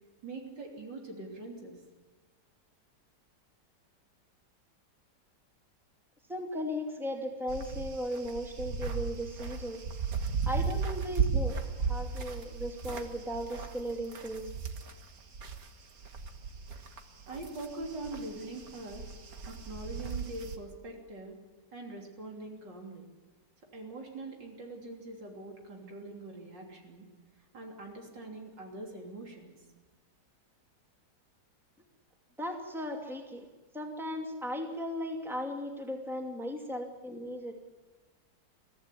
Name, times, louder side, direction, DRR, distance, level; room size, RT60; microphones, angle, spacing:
voice 1, 0.2-1.8 17.3-19.1 19.5-21.3 21.7-23.1 23.7-27.1 27.5-29.6, right 2 dB, 85° right, 1 dB, 3.9 m, -43 dB
voice 2, 6.3-9.8 10.5-11.6 11.9-14.5 32.4-33.5 33.7-37.6, equal, ahead, 2 dB, 2.5 m, -36 dB
sound 1, 7.5-15.7 16.0-20.6, right 5 dB, 55° right, 1.9 m, -36 dB
23.0 x 15.0 x 10.0 m, 1.2 s
omnidirectional pair, 1.9 m